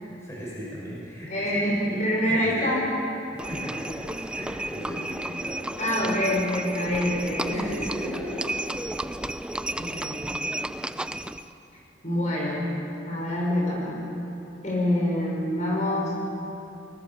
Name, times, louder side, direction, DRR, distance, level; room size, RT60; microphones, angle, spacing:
voice 1, 0.0-2.7 3.3-6.1 7.4-8.5, equal, 15° left, -6 dB, 6.2 m, -37 dB
voice 2, 1.3-2.9 5.8-7.6 9.8-10.4 12.0-12.7 13.0-14.0 14.6-16.1, left 1 dB, 40° left, -3 dB, 6.3 m, -26 dB
Livestock farm animals working animals, 3.4-11.5, right 1 dB, 5° right, 0.5 m, -33 dB
29.5 x 20.5 x 7.4 m, 2.9 s
head